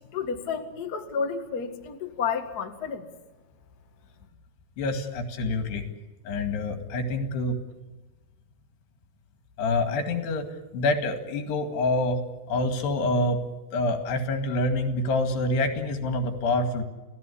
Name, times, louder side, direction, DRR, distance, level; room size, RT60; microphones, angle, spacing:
voice 1, 0.1-3.1, left 6 dB, 45° left, 4 dB, 1.3 m, -31 dB
voice 2, 4.8-5.8 6.3-7.6 9.6-10.5 10.7-12.2 12.5-13.4 13.7-16.8, left 2 dB, 75° left, 5 dB, 4.3 m, -26 dB
29.0 x 17.0 x 8.6 m, 1.1 s
omnidirectional pair, 4.8 m